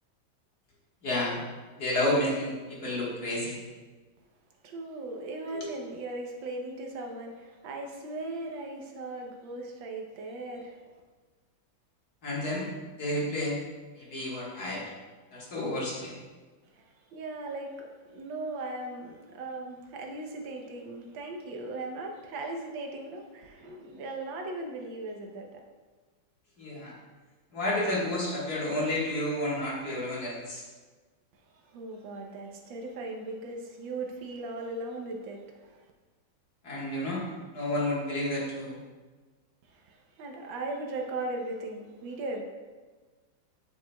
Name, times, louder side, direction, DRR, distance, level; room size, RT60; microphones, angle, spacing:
voice 1, 1.0-1.4 1.8-3.6 5.6-5.7 12.2-12.7 13.0-13.6 14.0-14.9 15.3-16.2 26.6-26.9 27.5-30.7 36.6-37.3 37.5-38.8, left 1 dB, 50° left, -5 dB, 1.9 m, -30 dB
voice 2, 4.6-11.0 16.7-25.6 31.5-35.8 39.7-42.4, right 2 dB, 75° right, 2 dB, 1.5 m, -38 dB
8.2 x 7.2 x 2.2 m, 1.4 s
omnidirectional pair, 2.2 m